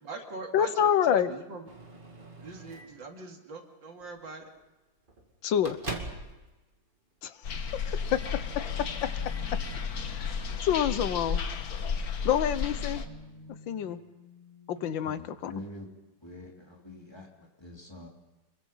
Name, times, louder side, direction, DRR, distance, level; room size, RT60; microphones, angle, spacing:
voice 1, 0.0-1.7 2.4-4.4, right 3 dB, 75° right, 2 dB, 3.3 m, -41 dB
voice 2, 0.5-1.3 5.4-5.8 7.2-7.3 8.1-8.2 8.6-8.7 9.0-9.1 10.1-10.3 10.6-11.4 12.3-13.0 13.7-14.0 14.7-15.5, left 9 dB, 90° left, 14 dB, 1.7 m, -27 dB
Microwave oven, 1.7-3.1 4.0-4.2 4.6-4.7 5.1-6.4 6.7-6.8 7.5-7.8 8.1-8.4 8.7-9.8, right 2 dB, 25° right, 2.5 m, -43 dB
sound 1, 7.4-13.0, left 6 dB, 55° left, 1.7 m, -33 dB
sound 2, 9.4-14.9, right 1 dB, 50° right, 7.3 m, -52 dB
voice 3, 15.0-15.9 16.2-18.1, left 1 dB, 15° left, -1 dB, 3.6 m, -46 dB
26.5 x 22.5 x 5.6 m, 1.1 s
omnidirectional pair, 2.0 m